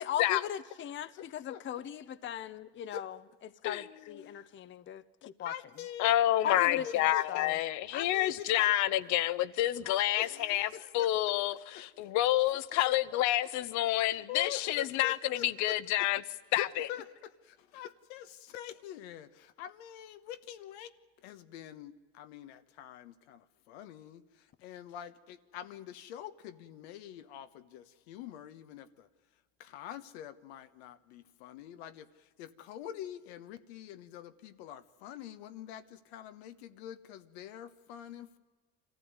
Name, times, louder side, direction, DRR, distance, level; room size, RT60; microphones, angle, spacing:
voice 1, 0.0-3.2 3.6-5.5 6.4-7.6, left 10 dB, 35° left, 0.8 m, -38 dB
voice 2, 1.1-1.6 2.2-2.3 2.9-3.0 4.2-4.3 5.4-6.2 6.5-7.5 7.9-8.7 9.8-11.2 11.7-12.1 12.9-13.2 14.3-15.8 16.5-20.9 21.2-29.1 29.6-38.4, left 11 dB, 85° left, 1.2 m, -45 dB
voice 3, 6.0-10.7 10.9-16.2 16.5-16.9, left 14 dB, 65° left, 1.0 m, -28 dB
25.0 x 15.0 x 9.6 m
supercardioid pair, 95°, 32 cm